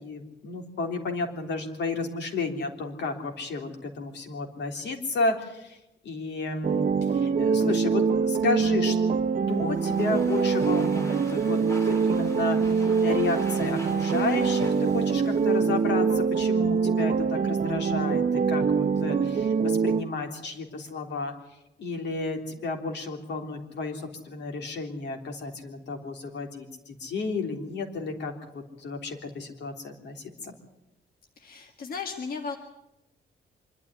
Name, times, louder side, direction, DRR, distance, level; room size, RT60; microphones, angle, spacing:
voice 1, 0.0-5.8 6.0-6.9 7.1-9.0 9.5-21.3 21.8-30.5, left 3 dB, 75° left, 4 dB, 3.5 m, -32 dB
sound 1, 6.6-20.0, right 5 dB, 50° right, 0.8 m, -24 dB
Domestic sounds home sounds, 9.5-16.4, equal, 15° left, 4.0 m, -44 dB
voice 2, 31.4-32.6, left 5 dB, 55° left, 4 dB, 1.9 m, -35 dB
25.0 x 12.5 x 9.7 m, 0.92 s
wide cardioid pair, 165°, 18 cm